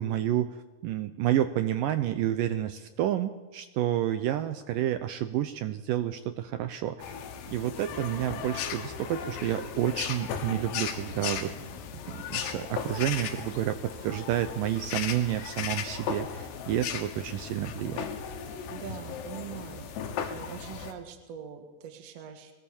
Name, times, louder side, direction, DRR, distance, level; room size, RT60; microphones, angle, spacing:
voice 1, 0.0-7.2 7.5-11.5 12.1-18.1, right 12 dB, 80° right, 10 dB, 1.9 m, -30 dB
sound 1, 7.0-20.9, left 7 dB, 90° left, 3.6 m, -36 dB
voice 2, 11.1-11.8 18.7-19.9 20.3-22.5, right 9 dB, 55° right, 5 dB, 2.0 m, -43 dB
21.5 x 17.5 x 7.1 m, 1.2 s
omnidirectional pair, 4.8 m